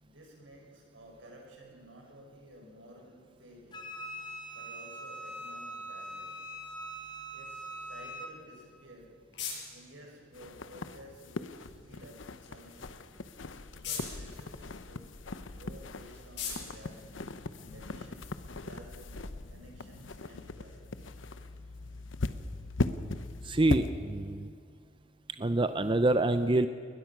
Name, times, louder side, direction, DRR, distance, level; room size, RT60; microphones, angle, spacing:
voice 1, 0.0-3.9 4.5-6.4 7.3-9.1 9.7-13.2 13.7-15.1 15.5-17.2 17.6-19.2 19.5-21.1, equal, 85° right, 0 dB, 6.4 m, -53 dB
Wind instrument woodwind instrument, 3.7-8.3, right 1 dB, 25° left, 2.4 m, -42 dB
sound 1, 8.6-18.0, left 6 dB, 65° left, 7.2 m, -46 dB
sound 2, 10.3-23.9, left 2 dB, 85° left, 0.9 m, -39 dB
voice 2, 23.4-24.5 25.4-26.7, right 2 dB, 25° right, 10 dB, 0.6 m, -26 dB
21.0 x 20.5 x 6.0 m, 2.2 s
head